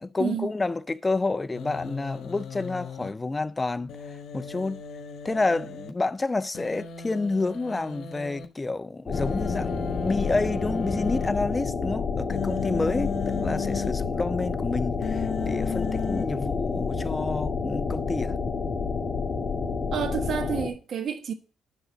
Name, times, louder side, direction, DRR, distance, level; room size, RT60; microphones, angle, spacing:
voice 1, 0.0-4.0 4.3-4.8 5.2-18.4, left 3 dB, 20° left, 0.4 m, -29 dB
Human voice, 1.5-3.1 3.9-5.9 6.5-8.4 9.1-11.3 12.3-13.9 15.0-16.2, left 6 dB, 70° left, 1.5 m, -35 dB
sound 1, 9.1-20.7, left 5 dB, 40° left, 1.7 m, -29 dB
voice 2, 19.9-21.3, right 7 dB, 60° right, 1.3 m, -29 dB
11.0 x 3.8 x 6.2 m
cardioid pair, 90°, 0 cm